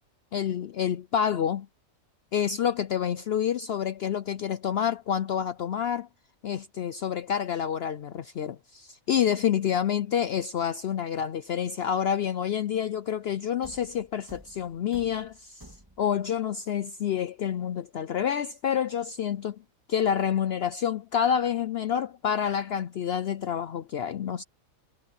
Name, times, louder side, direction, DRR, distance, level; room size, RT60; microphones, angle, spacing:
voice 1, 0.3-1.7 2.3-6.1 6.4-15.7 16.0-19.6 19.9-24.4, left 9 dB, 60° left, 0.7 m, -28 dB
Thump thud, 13.6-16.3, right 1 dB, 15° right, 2.4 m, -51 dB
omnidirectional pair, 1.4 m